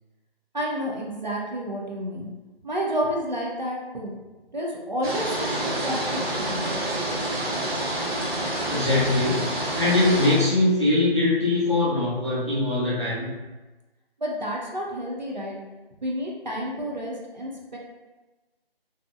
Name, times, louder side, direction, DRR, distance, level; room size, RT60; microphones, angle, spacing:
voice 1, 0.5-2.3 2.6-4.2 4.5-6.8 14.2-15.6 16.0-17.8, equal, 45° right, -3 dB, 0.4 m, -30 dB
sound 1, 5.0-10.5, right 1 dB, 75° right, 1.0 m, -28 dB
voice 2, 8.7-13.3, left 2 dB, 30° left, -9 dB, 0.5 m, -22 dB
2.6 x 2.0 x 2.3 m, 1.2 s
figure-of-eight pair, 165°, 31 cm